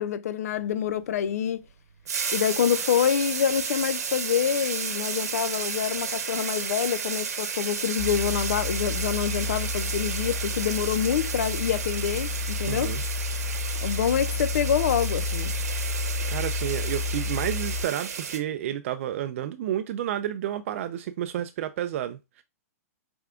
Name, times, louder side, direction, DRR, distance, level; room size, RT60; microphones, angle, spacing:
voice 1, 0.0-1.6 2.3-13.0 13.8-15.5, left 9 dB, 75° left, 0.4 m, -26 dB
sound 1, 2.1-18.4, right 6 dB, 80° right, 0.9 m, -33 dB
sound 2, 8.0-17.8, left 4 dB, 40° right, 0.9 m, -31 dB
voice 2, 12.7-13.0 16.3-22.4, right 11 dB, 55° right, 0.4 m, -30 dB
4.8 x 3.4 x 2.3 m
hypercardioid pair, 135°, 8 cm